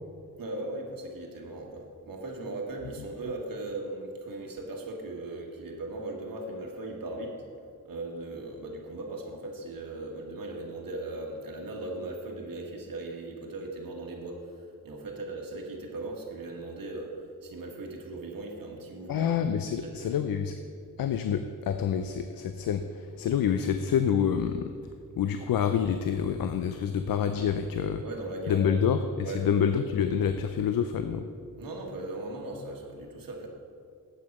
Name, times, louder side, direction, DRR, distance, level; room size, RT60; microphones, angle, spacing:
voice 1, 0.4-7.4 7.8-20.1 28.0-28.8 29.2-29.4 31.6-33.5, right 2 dB, 80° right, 0 dB, 1.5 m, -38 dB
voice 2, 19.1-20.6 21.0-24.7 25.1-28.0 28.5-31.3, left 8 dB, 90° left, 8 dB, 0.5 m, -27 dB
8.0 x 7.5 x 5.3 m, 2.3 s
wide cardioid pair, 100°, 34 cm